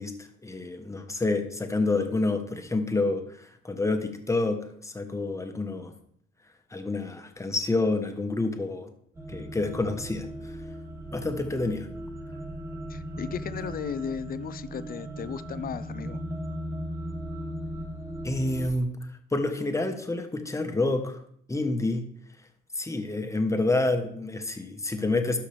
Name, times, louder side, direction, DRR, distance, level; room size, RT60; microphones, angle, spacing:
voice 1, 0.0-5.9 6.7-8.9 9.3-10.6 11.1-11.9 18.2-18.9 19.3-21.2 21.5-22.0 22.7-25.4, left 2 dB, 15° left, 6 dB, 1.2 m, -28 dB
sound 1, 9.1-18.7, right 1 dB, 15° right, 1.3 m, -37 dB
voice 2, 12.9-16.2, left 7 dB, 45° left, 14 dB, 0.5 m, -35 dB
12.0 x 5.7 x 3.4 m, 0.67 s
cardioid pair, 90°, 20 cm